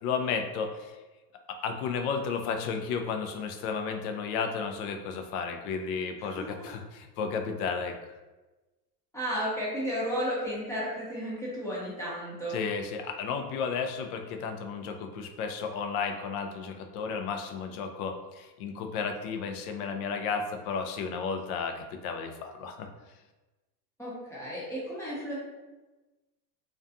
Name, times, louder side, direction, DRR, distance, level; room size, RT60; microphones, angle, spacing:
voice 1, 0.0-0.9 1.5-7.9 12.5-22.9, left 5 dB, 60° left, 5 dB, 0.5 m, -33 dB
voice 2, 6.3-6.7 9.1-12.6 24.0-25.4, equal, 5° left, -8 dB, 0.6 m, -33 dB
2.4 x 2.2 x 2.6 m, 1.2 s
supercardioid pair, 120°, 49 cm